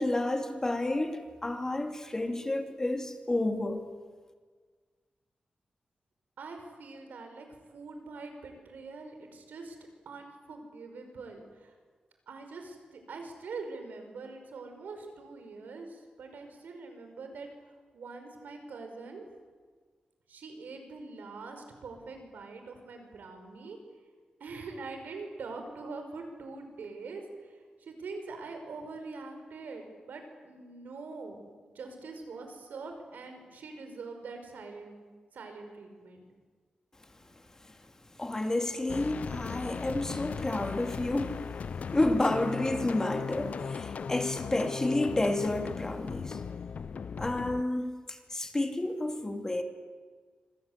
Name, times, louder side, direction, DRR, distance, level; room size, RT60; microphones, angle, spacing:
voice 1, 0.0-3.8 37.6-37.7 38.2-41.4 41.9-46.4 47.2-49.6, left 2 dB, 20° left, 2.7 m, -30 dB
voice 2, 6.4-9.8 10.1-11.7 12.3-17.5 17.9-19.3 20.3-23.8 24.4-31.4 31.7-35.0 35.3-36.3, right 3 dB, 90° right, 5.6 m, -44 dB
sound 1, 38.9-47.6, left 6 dB, 55° left, 0.7 m, -37 dB
26.5 x 25.5 x 8.2 m
wide cardioid pair, 145°, 3 cm